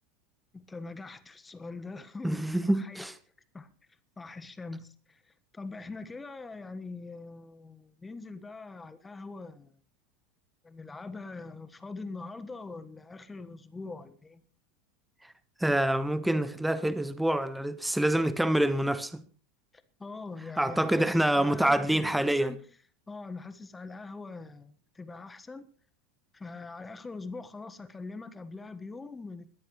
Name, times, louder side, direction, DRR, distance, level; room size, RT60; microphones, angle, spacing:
voice 1, 0.5-3.1 3.5-3.7 4.2-9.7 10.6-14.4 20.0-22.6 23.1-25.7 26.3-29.6, left 3 dB, 15° left, 1.4 m, -43 dB
voice 2, 2.2-3.1 15.6-19.2 20.6-22.5, right 1 dB, 5° right, 1.1 m, -26 dB
21.0 x 14.0 x 3.1 m
figure-of-eight pair, 80°, 0 cm